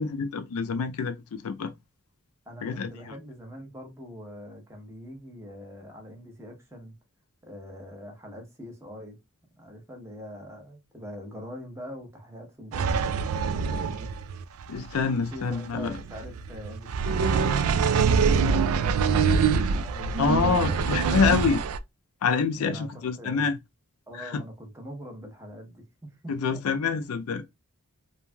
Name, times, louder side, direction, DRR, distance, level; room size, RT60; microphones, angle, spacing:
voice 1, 0.0-1.7 2.6-3.1 14.7-16.0 20.2-21.6 22.2-23.6 24.1-24.4 26.3-27.4, left 5 dB, 75° left, 0.4 m, -26 dB
voice 2, 2.5-7.0 7.4-9.2 9.6-13.2 13.6-14.1 15.3-21.2 22.6-23.5 24.1-26.6, equal, 10° right, 0.8 m, -43 dB
sound 1, 12.7-21.8, right 5 dB, 75° right, 0.3 m, -25 dB
3.1 x 2.6 x 2.2 m
head